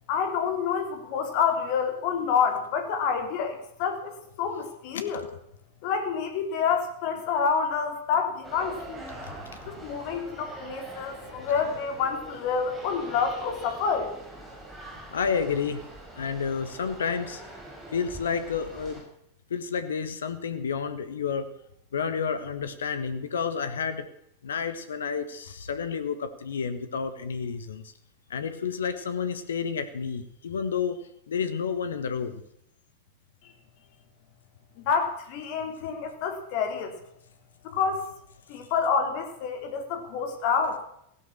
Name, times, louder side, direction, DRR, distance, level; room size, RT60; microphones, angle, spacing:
voice 1, 0.1-5.2 5.8-9.0 9.6-14.1 34.8-36.9 37.6-38.1 38.5-40.8, left 6 dB, 45° left, 6 dB, 3.2 m, -28 dB
sound 1, 8.4-19.0, right 2 dB, 10° right, 5.4 m, -43 dB
voice 2, 9.2-9.8 15.1-15.8 16.2-17.4 17.9-19.0 19.5-21.5 21.9-24.1 24.4-27.8 28.3-32.4, left 6 dB, 65° left, 11 dB, 1.3 m, -30 dB
16.0 x 12.0 x 7.3 m, 0.74 s
figure-of-eight pair, 90°, 0 cm